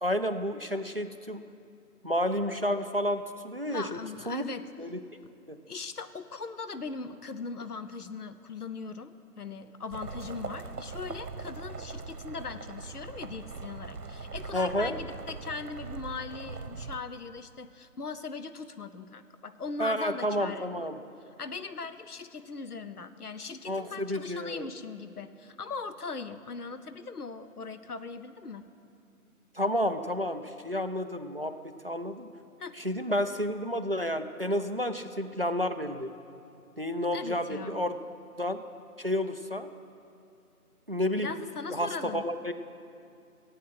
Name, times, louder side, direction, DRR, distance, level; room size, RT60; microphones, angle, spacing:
voice 1, 0.0-1.4 2.0-4.0 4.3-4.4 4.8-5.0 5.5-5.6 14.5-15.0 19.8-21.0 23.7-24.7 29.5-32.3 32.8-36.1 36.8-38.0 38.4-38.6 39.0-39.7 40.9-41.4 41.7-42.5, equal, 40° right, 8 dB, 0.5 m, -30 dB
voice 2, 3.7-4.6 5.7-20.7 21.4-28.6 32.6-32.8 37.1-37.8 41.2-42.2, left 4 dB, 75° left, 10 dB, 1.0 m, -39 dB
sound 1, 9.9-17.0, right 4 dB, 80° right, 1.2 m, -41 dB
15.5 x 8.6 x 7.8 m, 2.5 s
figure-of-eight pair, 170°, 46 cm